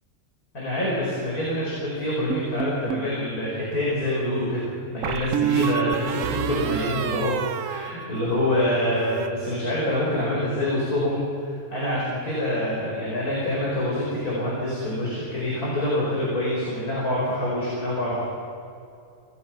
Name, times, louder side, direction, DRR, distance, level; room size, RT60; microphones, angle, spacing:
voice 1, 0.5-4.6 4.9-7.3 7.6-18.2, left 1 dB, 85° left, -6 dB, 5.6 m, -26 dB
sound 1, 2.3-3.1 5.0-8.5 8.8-9.3, right 9 dB, 65° right, 1.1 m, -28 dB
26.5 x 19.0 x 5.9 m, 2.5 s
omnidirectional pair, 1.5 m